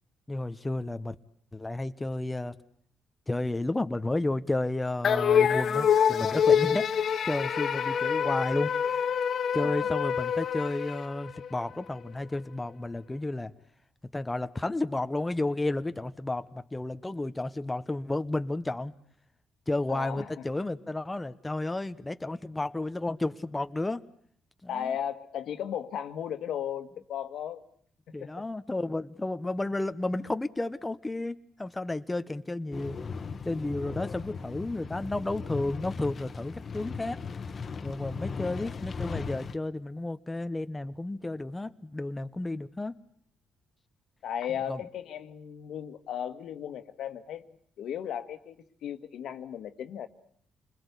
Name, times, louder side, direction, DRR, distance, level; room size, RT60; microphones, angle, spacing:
voice 1, 0.3-1.2 1.5-2.6 3.3-6.9 7.3-9.1 9.5-13.5 14.1-18.9 19.7-24.0 24.6-24.9 28.1-33.0 33.4-37.2 37.8-42.9 44.7-44.8, left 2 dB, 15° left, 9 dB, 1.1 m, -32 dB
sound 1, 5.0-11.6, left 8 dB, 60° left, 1.3 m, -26 dB
voice 2, 19.9-20.4 24.7-27.6 28.2-28.3 38.5-38.8 44.2-47.4 47.8-48.6 48.8-50.1, left 9 dB, 75° left, 9 dB, 1.8 m, -36 dB
sound 2, 32.7-39.6, left 5 dB, 45° left, 1.3 m, -38 dB
28.0 x 21.0 x 8.3 m, 0.62 s
cardioid pair, 90°, 0 cm